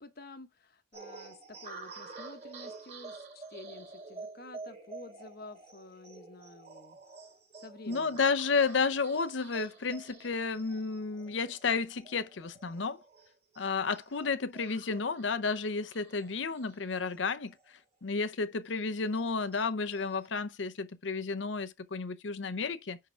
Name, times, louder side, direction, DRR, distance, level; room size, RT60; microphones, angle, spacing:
voice 1, 0.0-7.0 7.5-8.2, left 2 dB, 50° left, 1.0 m, -50 dB
sound 1, 0.9-17.8 18.2-18.3 18.7-20.3, right 3 dB, 35° right, 3.1 m, -49 dB
voice 2, 7.9-13.0 13.6-23.0, left 4 dB, 70° left, 0.7 m, -32 dB
10.5 x 3.8 x 4.5 m
head